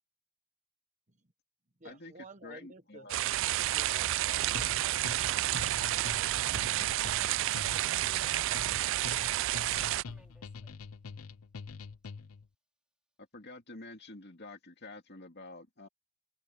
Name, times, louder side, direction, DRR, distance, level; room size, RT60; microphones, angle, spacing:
voice 1, 1.8-5.5, right 3 dB, 35° right, 1.2 m, -53 dB
voice 2, 2.4-3.2 13.3-15.9, left 2 dB, 45° left, 2.4 m, -48 dB
sound 1, 3.1-10.0, right 14 dB, 60° right, 0.3 m, -30 dB
sound 2, 3.8-4.6 4.9-5.0 5.2-8.7 9.0-9.1 9.6-10.4, right 7 dB, 85° right, 6.1 m, -59 dB
sound 3, 4.5-12.5, left 4 dB, 75° left, 0.6 m, -45 dB
voice 3, 7.4-10.9, right 1 dB, 5° right, 4.2 m, -60 dB
head